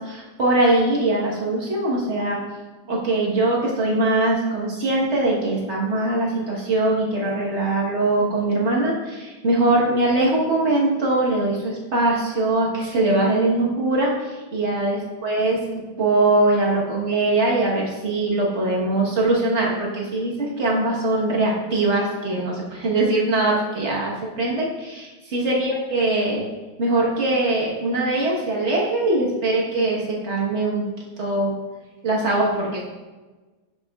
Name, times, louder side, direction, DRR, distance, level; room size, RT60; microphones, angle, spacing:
voice 1, 0.0-2.4 2.9-26.4 26.8-30.9 31.2-31.6 32.0-32.8, right 2 dB, 40° right, -4 dB, 1.3 m, -22 dB
7.8 x 6.9 x 2.4 m, 1.3 s
omnidirectional pair, 2.2 m